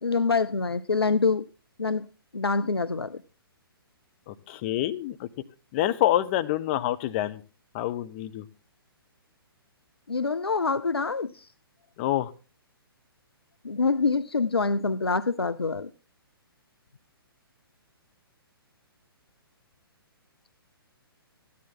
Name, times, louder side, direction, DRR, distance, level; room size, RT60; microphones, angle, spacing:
voice 1, 0.0-1.4 1.8-2.1 2.3-3.2 10.1-11.5 13.6-15.9, left 4 dB, 80° left, 0.5 m, -25 dB
voice 2, 4.3-5.3 5.7-7.4 7.7-8.4 12.0-12.3, left 13 dB, 30° left, 0.8 m, -27 dB
14.0 x 10.5 x 3.7 m
figure-of-eight pair, 125°, 13 cm